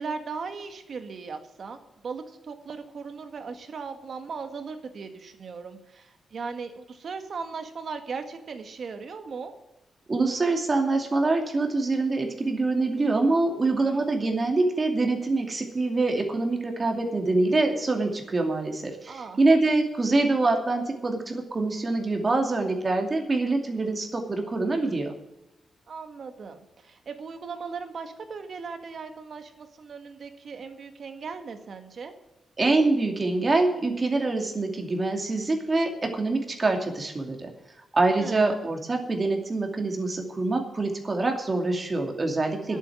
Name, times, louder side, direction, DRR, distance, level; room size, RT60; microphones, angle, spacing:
voice 1, 0.0-9.5 13.8-14.0 19.1-19.4 24.8-25.0 25.9-32.1 38.2-38.7 42.7-42.8, right 5 dB, 55° right, 7 dB, 1.8 m, -38 dB
voice 2, 10.1-25.1 32.6-37.5 37.9-42.8, right 3 dB, 30° right, 3 dB, 2.5 m, -25 dB
11.0 x 8.2 x 9.2 m, 0.92 s
wide cardioid pair, 120°, 0 cm